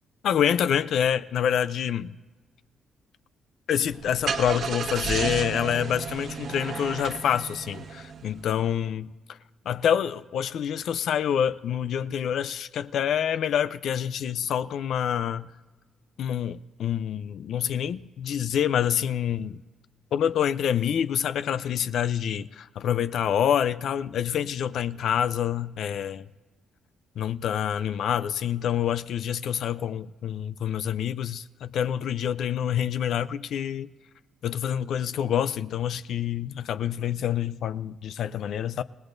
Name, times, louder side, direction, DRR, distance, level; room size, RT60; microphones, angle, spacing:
voice 1, 0.2-2.2 3.7-9.4 9.7-15.5 16.2-19.6 20.1-26.3 27.2-33.9 34.4-38.8, left 9 dB, 70° left, 0.5 m, -27 dB
Car / Engine starting, 3.9-8.5, right 6 dB, 65° right, 1.4 m, -32 dB
29.0 x 18.0 x 2.6 m
cardioid pair, 90°, 0 cm